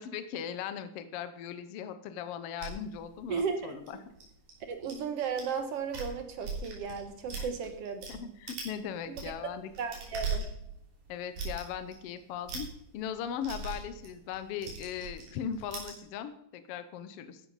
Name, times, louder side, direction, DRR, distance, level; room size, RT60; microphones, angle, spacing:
voice 1, 0.0-3.8 7.3-7.5 8.1-9.7 11.1-12.7 12.9-17.4, left 8 dB, 80° left, 10 dB, 1.3 m, -38 dB
sound 1, 2.6-4.9 5.4-5.6 5.8-8.1 8.5-8.8 9.0-16.0, right 4 dB, 80° right, 4.9 m, -40 dB
voice 2, 3.3-3.8 4.7-8.3 9.2-9.3 9.8-10.5, right 6 dB, 60° right, 7 dB, 1.8 m, -35 dB
14.5 x 11.0 x 4.1 m, 0.77 s
omnidirectional pair, 3.8 m